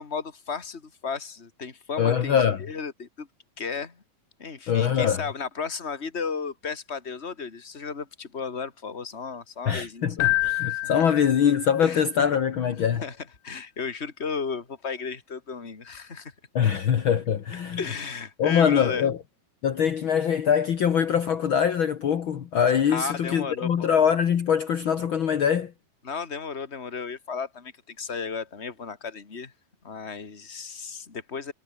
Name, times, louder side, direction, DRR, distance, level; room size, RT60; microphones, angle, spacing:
voice 1, 0.0-3.3 3.6-4.0 4.4-10.3 10.7-11.0 11.8-12.0 13.0-13.2 13.4-16.3 17.8-19.1 22.9-23.9 26.0-29.5 29.8-31.5, left 5 dB, 20° left, 1.9 m, -34 dB
voice 2, 2.0-2.6 4.7-5.2 9.6-13.0 16.5-17.8 18.4-19.2 19.6-25.7, left 8 dB, 60° left, 1.3 m, -23 dB
Keyboard (musical), 10.2-12.0, left 20 dB, 90° left, 1.9 m, -27 dB
omnidirectional pair, 4.4 m